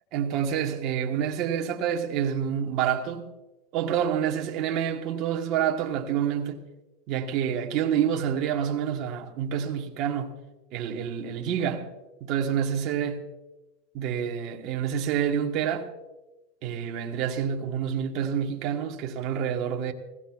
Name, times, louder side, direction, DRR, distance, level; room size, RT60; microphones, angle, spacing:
voice 1, 0.1-3.3 3.7-6.6 7.1-10.4 10.7-11.9 12.2-13.2 13.9-15.9 16.6-19.9, right 8 dB, 35° right, 1.2 m, -28 dB
20.5 x 16.0 x 2.4 m
supercardioid pair, 180°, 0 cm